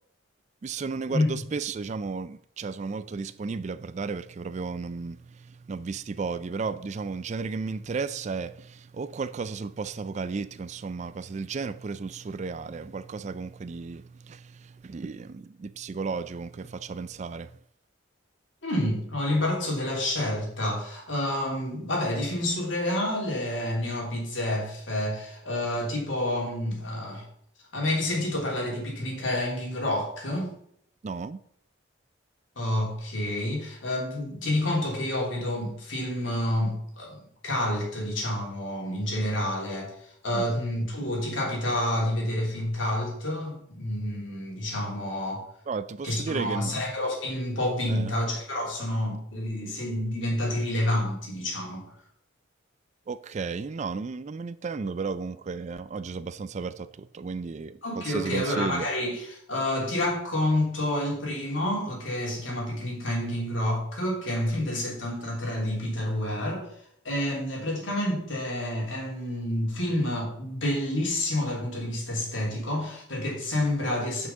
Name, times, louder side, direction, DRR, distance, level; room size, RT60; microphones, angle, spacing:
voice 1, 0.6-17.6 31.0-31.4 40.3-40.4 45.7-46.8 47.9-48.1 53.1-58.9, right 4 dB, 35° right, 0.3 m, -34 dB
voice 2, 18.6-27.2 27.7-30.5 32.6-37.2 37.4-45.5 46.0-51.9 57.8-66.7 67.0-74.3, left 1 dB, 70° left, 3.0 m, -29 dB
6.2 x 5.6 x 6.9 m
head